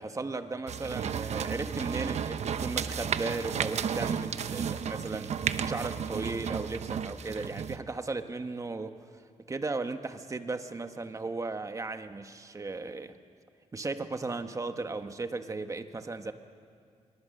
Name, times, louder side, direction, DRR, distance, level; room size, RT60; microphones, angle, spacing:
voice 1, 0.0-8.9 9.5-13.1 13.7-16.3, right 3 dB, 25° right, 8 dB, 1.2 m, -36 dB
sound 1, 0.7-7.8, right 7 dB, 65° right, 0.8 m, -33 dB
26.5 x 23.0 x 6.6 m, 2.3 s
wide cardioid pair, 125°, 12 cm